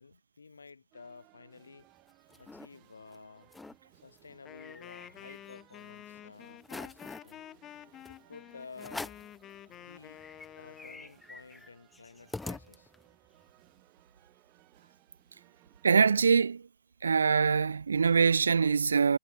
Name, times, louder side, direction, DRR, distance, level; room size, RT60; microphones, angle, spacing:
voice 1, 0.0-1.9 2.4-3.5 4.0-7.4 8.1-9.2 9.7-10.2 10.6-12.9, left 5 dB, 80° left, 7.5 m, -52 dB
sound 1, 0.9-17.5, right 23 dB, 40° right, 6.2 m, -64 dB
sound 2, 1.8-2.7 3.1-3.2 3.4-3.8 4.2-5.8 6.2-6.3 6.6-7.3 8.0-8.2 8.8-9.4 9.8-9.9 10.1-13.2, left 3 dB, 10° left, 1.0 m, -45 dB
Wind instrument woodwind instrument, 4.4-11.1, left 12 dB, 30° left, 3.8 m, -50 dB
voice 2, 15.8-16.6 17.0-19.2, right 5 dB, 75° right, 0.3 m, -24 dB
figure-of-eight pair, 105°, 0 cm